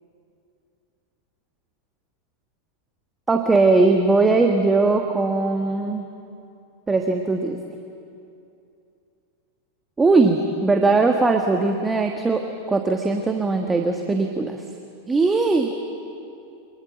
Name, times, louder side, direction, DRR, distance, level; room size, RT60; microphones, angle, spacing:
voice 1, 3.3-6.1 6.9-7.6 10.0-14.6 15.1-15.7, right 3 dB, 15° right, 4 dB, 1.4 m, -20 dB
24.0 x 20.5 x 7.9 m, 2.7 s
figure-of-eight pair, 90°, 0 cm